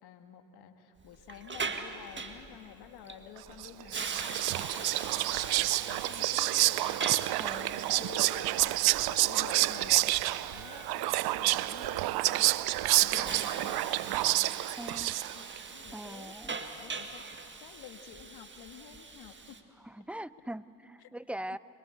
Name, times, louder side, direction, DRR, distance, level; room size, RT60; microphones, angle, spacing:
voice 1, 0.0-4.0 4.3-5.0 5.4-7.0 7.5-8.8 9.1-12.6 13.0-17.2 17.6-19.6 21.0-21.1, left 9 dB, 70° left, 6 dB, 1.9 m, -50 dB
Hiss, 1.0-19.6, right 4 dB, 30° right, 2.0 m, -42 dB
Whispering, 3.6-15.6, right 18 dB, 65° right, 0.6 m, -29 dB
Cheering / Applause / Crowd, 6.7-14.4, left 3 dB, 25° left, 5.2 m, -54 dB
voice 2, 7.4-8.0 14.8-15.1 15.9-16.6 19.8-21.6, right 1 dB, 5° right, 17 dB, 0.6 m, -42 dB
26.0 x 22.5 x 8.3 m, 2.8 s
hypercardioid pair, 55°, 40 cm